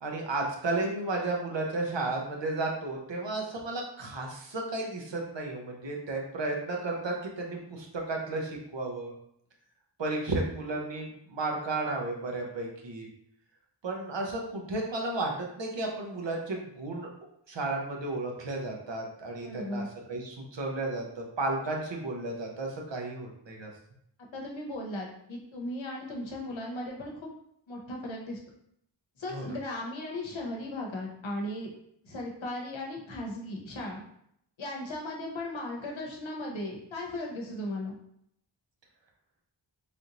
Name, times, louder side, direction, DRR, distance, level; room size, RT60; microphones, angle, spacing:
voice 1, 0.0-9.1 10.0-13.1 13.8-17.1 17.5-19.8 20.1-23.7 29.3-29.5, right 2 dB, 75° right, 0 dB, 0.8 m, -33 dB
voice 2, 19.4-19.9 24.3-27.3 27.7-28.4 29.2-31.7 32.0-34.0 34.6-37.9, left 1 dB, 85° left, -1 dB, 0.8 m, -37 dB
3.4 x 2.5 x 2.8 m, 0.72 s
wide cardioid pair, 50°, 45 cm